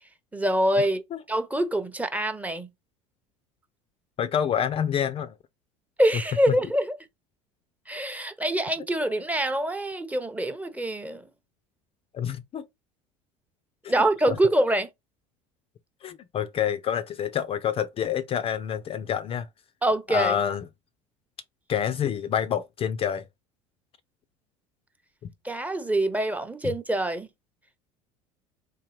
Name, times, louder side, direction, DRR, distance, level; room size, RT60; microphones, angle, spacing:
voice 1, 0.3-2.7 6.0-6.9 7.9-11.3 13.9-14.9 19.8-20.4 25.4-27.3, right 1 dB, 10° right, 0.6 m, -25 dB
voice 2, 4.2-5.3 12.1-12.6 14.3-14.4 16.0-19.5 20.1-20.6 21.7-23.3, left 9 dB, 35° left, 0.4 m, -27 dB
3.7 x 2.7 x 3.0 m
hypercardioid pair, 75°, 16 cm